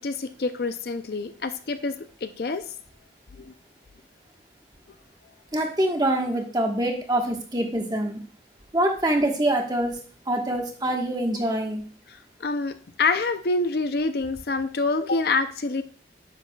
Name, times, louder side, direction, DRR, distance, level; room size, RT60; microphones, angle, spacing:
voice 1, 0.0-2.6 3.3-3.5 12.1-15.8, left 3 dB, 55° left, 9 dB, 0.5 m, -27 dB
voice 2, 5.5-8.2 8.7-10.0 10.3-11.8, right 1 dB, 20° right, 2 dB, 1.2 m, -25 dB
10.0 x 7.1 x 2.3 m, 0.44 s
head